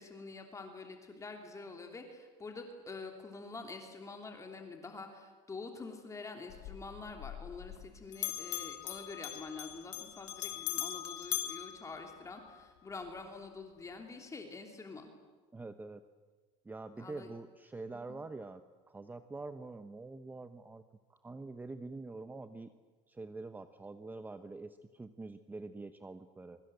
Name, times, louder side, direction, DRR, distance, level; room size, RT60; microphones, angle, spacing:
voice 1, 0.0-15.1 17.0-17.3 17.9-18.2, left 3 dB, 20° left, 3 dB, 3.0 m, -46 dB
Bell, 6.5-12.6, left 16 dB, 85° left, 2.4 m, -41 dB
voice 2, 15.5-16.0 16.6-20.8 21.1-22.7 23.1-26.6, right 3 dB, 10° right, 10 dB, 0.9 m, -45 dB
25.0 x 24.0 x 7.9 m, 1.4 s
cardioid pair, 125°, 15 cm